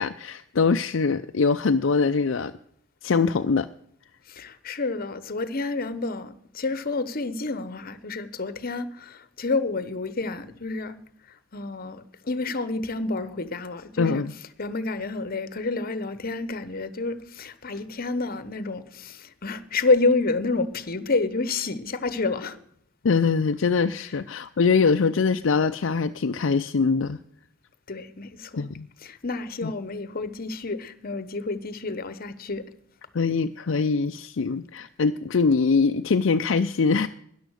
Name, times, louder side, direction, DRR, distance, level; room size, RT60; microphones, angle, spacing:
voice 1, 0.0-2.5 3.0-3.7 14.0-14.3 23.0-27.2 28.6-28.9 29.6-29.7 33.1-37.1, left 4 dB, 70° left, 0.5 m, -23 dB
voice 2, 4.3-11.0 11.5-14.2 14.6-22.6 27.9-28.6 29.0-32.6, left 3 dB, 50° left, 1.0 m, -29 dB
13.0 x 10.5 x 6.4 m
head